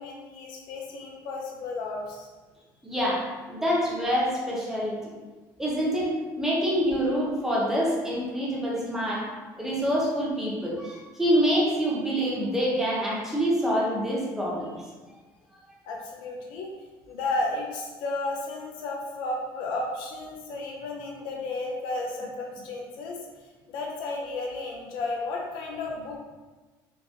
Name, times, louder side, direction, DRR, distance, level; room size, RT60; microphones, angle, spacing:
voice 1, 0.0-2.3 15.9-16.7 17.1-23.2 23.7-26.2, left 2 dB, 75° left, -1 dB, 0.7 m, -33 dB
voice 2, 2.8-5.1 5.6-6.1 6.4-9.3 9.6-14.7, equal, 5° right, -5 dB, 0.8 m, -26 dB
4.5 x 3.0 x 2.8 m, 1.3 s
cardioid pair, 160°, 8 cm